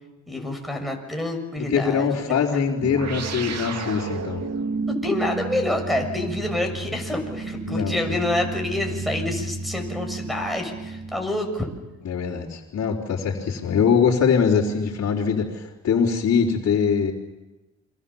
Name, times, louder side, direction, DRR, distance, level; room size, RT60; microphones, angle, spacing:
voice 1, 0.3-2.4 4.9-11.7, left 1 dB, ahead, 1 dB, 6.8 m, -27 dB
voice 2, 1.6-4.4 7.7-8.2 12.0-17.1, left 6 dB, 55° left, -6 dB, 4.3 m, -22 dB
sound 1, 2.8-11.6, right 3 dB, 60° right, 2.8 m, -32 dB
28.5 x 24.5 x 7.3 m, 1.0 s
cardioid pair, 90°, 30 cm